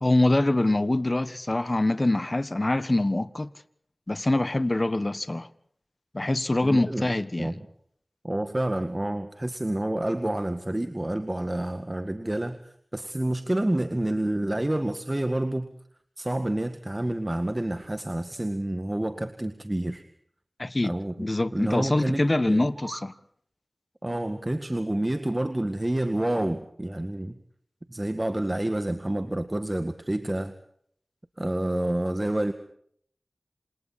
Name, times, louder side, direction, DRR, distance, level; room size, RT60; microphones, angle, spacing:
voice 1, 0.0-3.5 4.1-5.5 6.1-7.5 20.6-23.1, left 2 dB, 40° left, 1.4 m, -24 dB
voice 2, 6.6-7.1 7.4-7.6 8.2-15.7 16.2-20.0 20.8-21.3 21.5-22.7 24.0-27.4 27.9-30.5 31.4-32.5, right 1 dB, 25° right, 1.9 m, -28 dB
sound 1, 22.4-23.2, right 3 dB, 80° right, 2.6 m, -43 dB
28.0 x 27.5 x 4.3 m
wide cardioid pair, 40°, 0 cm